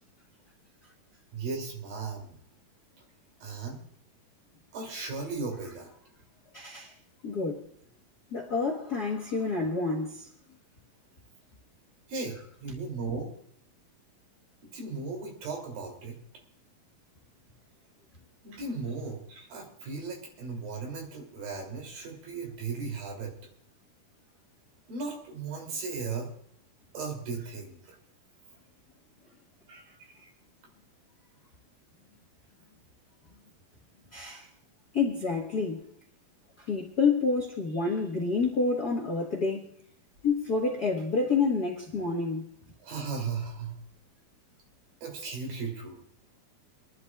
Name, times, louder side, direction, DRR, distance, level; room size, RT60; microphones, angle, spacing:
voice 1, 1.3-2.4 3.4-3.9 4.7-5.9 12.1-13.3 14.6-16.2 18.4-23.3 24.9-26.3 26.9-28.0 29.7-30.3 42.8-43.8 45.0-46.0, right 4 dB, 70° right, 4.6 m, -36 dB
voice 2, 6.5-6.9 7.2-7.7 8.3-10.3 34.1-34.5 34.9-35.9 36.6-39.7 40.2-42.5, left 4 dB, 75° left, 0.9 m, -28 dB
28.0 x 11.5 x 2.4 m
omnidirectional pair, 4.2 m